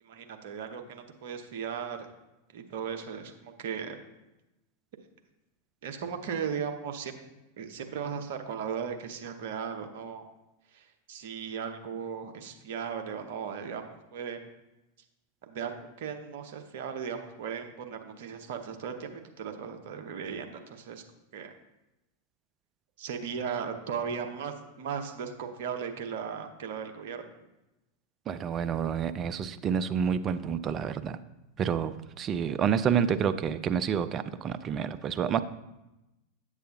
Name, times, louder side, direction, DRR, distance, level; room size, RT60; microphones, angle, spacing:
voice 1, 0.0-2.1 2.5-4.0 5.8-7.2 7.6-10.2 10.7-14.5 15.4-21.0 21.3-21.5 23.0-27.3, right 7 dB, 55° right, 6 dB, 0.8 m, -37 dB
voice 2, 28.3-31.2 31.6-35.4, right 7 dB, 30° right, 12 dB, 0.4 m, -29 dB
8.1 x 7.6 x 2.7 m, 0.97 s
figure-of-eight pair, 90°, 0 cm